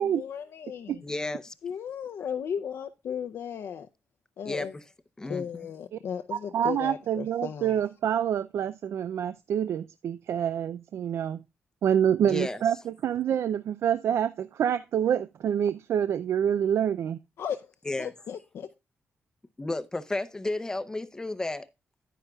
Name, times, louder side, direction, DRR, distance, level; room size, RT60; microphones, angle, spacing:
voice 1, 0.0-1.0 1.6-3.9 4.4-4.7 5.3-7.8 17.4-17.6 18.0-18.7, left 8 dB, 70° left, 0.6 m, -35 dB
voice 2, 1.0-1.5 4.5-4.8 5.2-5.7 12.3-12.6 17.9-18.1 19.6-21.7, left 2 dB, 15° left, 0.6 m, -32 dB
voice 3, 6.3-11.4 11.8-17.2, right 9 dB, 70° right, 0.4 m, -27 dB
10.0 x 10.0 x 2.3 m
wide cardioid pair, 160°, 5 cm